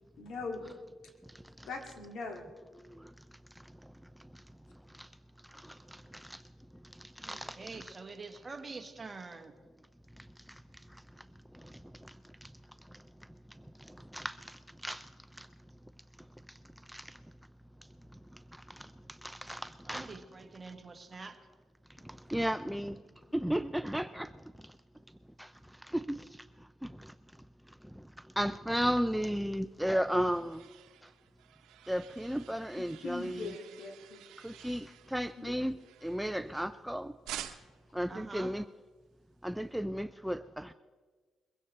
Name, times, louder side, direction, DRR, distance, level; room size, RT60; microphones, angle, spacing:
voice 1, 0.2-0.7 1.6-2.4 32.8-34.2 35.4-35.5, left 3 dB, 75° left, 3 dB, 2.3 m, -41 dB
voice 2, 5.5-6.4 7.0-7.9 10.5-10.6 11.5-12.2 12.4-12.5 13.8-15.1 15.4-15.5 16.9-17.2 18.5-20.2 22.0-23.0 23.3-24.3 25.4-25.5 25.8-26.4 26.8-27.1 27.9-28.0 28.4-30.6 31.9-33.5 34.4-35.8 36.0-37.1 37.9-38.7 39.4-40.7, equal, 5° right, 12 dB, 0.4 m, -35 dB
voice 3, 7.2-9.5 19.8-21.4 38.1-38.6, right 4 dB, 30° right, 6 dB, 1.4 m, -46 dB
sound 1, 29.5-36.8 37.3-37.9, right 11 dB, 90° right, 0.8 m, -50 dB
22.0 x 16.0 x 3.2 m, 1.4 s
cardioid pair, 90°, 0 cm